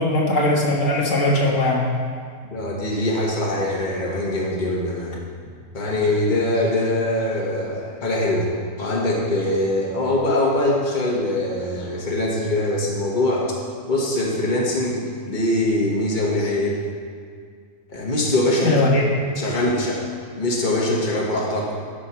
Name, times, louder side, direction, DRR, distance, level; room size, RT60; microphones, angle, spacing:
voice 1, 0.0-1.9 18.6-19.1, left 2 dB, 75° left, -3 dB, 1.8 m, -19 dB
voice 2, 2.5-5.2 5.7-8.5 8.8-13.5 13.9-16.8 17.9-18.9 19.4-20.0 20.4-21.8, left 1 dB, 35° left, -3 dB, 1.7 m, -22 dB
13.0 x 5.3 x 5.8 m, 2.1 s
omnidirectional pair, 1.3 m